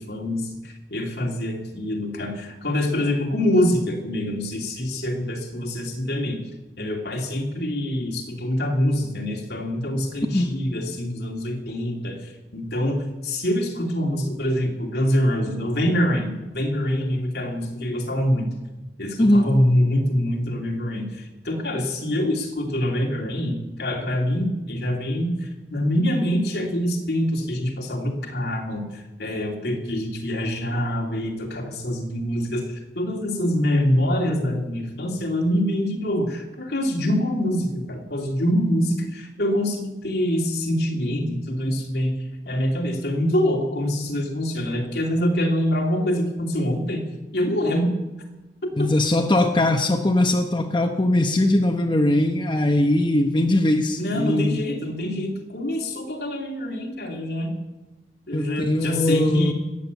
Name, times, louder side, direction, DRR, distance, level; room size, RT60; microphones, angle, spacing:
voice 1, 0.0-6.4 6.8-12.2 12.5-18.5 19.0-32.6 33.0-42.1 42.4-47.0 47.3-47.9 48.8-48.9 54.0-57.6 58.3-59.5, equal, 70° left, 0 dB, 2.7 m, -25 dB
voice 2, 48.8-54.6 58.3-59.5, left 1 dB, 25° left, 3 dB, 0.9 m, -20 dB
20.0 x 8.3 x 7.1 m, 1.1 s
head